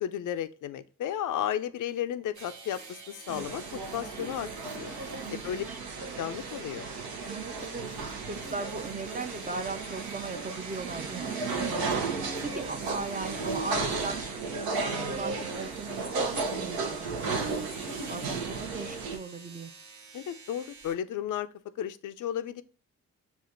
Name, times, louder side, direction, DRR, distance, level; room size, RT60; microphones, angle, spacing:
voice 1, 0.0-4.5 4.7-4.9 5.3-5.6 6.2-6.9 20.1-21.5 21.8-22.6, left 10 dB, 60° left, 0.5 m, -33 dB
sound 1, 2.3-20.9, right 4 dB, 50° right, 1.0 m, -49 dB
sound 2, 3.3-19.2, right 4 dB, 75° right, 0.7 m, -34 dB
voice 2, 5.2-5.8 7.3-19.7, right 3 dB, 25° right, 0.5 m, -39 dB
6.9 x 2.4 x 2.6 m
supercardioid pair, 45°, 36 cm